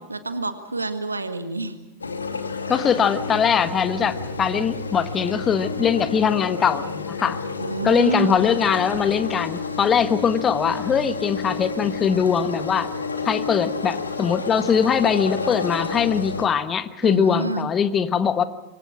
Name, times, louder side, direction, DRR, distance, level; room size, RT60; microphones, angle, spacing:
voice 1, 0.1-1.8 7.6-8.4 17.0-17.7, right 3 dB, 80° right, 9 dB, 1.8 m, -27 dB
sound 1, 2.0-16.5, left 4 dB, 75° left, 2.3 m, -30 dB
voice 2, 2.7-7.4 7.8-12.9 13.2-18.4, left 7 dB, 25° left, 12 dB, 1.2 m, -21 dB
26.5 x 23.5 x 6.0 m, 1.0 s
figure-of-eight pair, 90°, 0 cm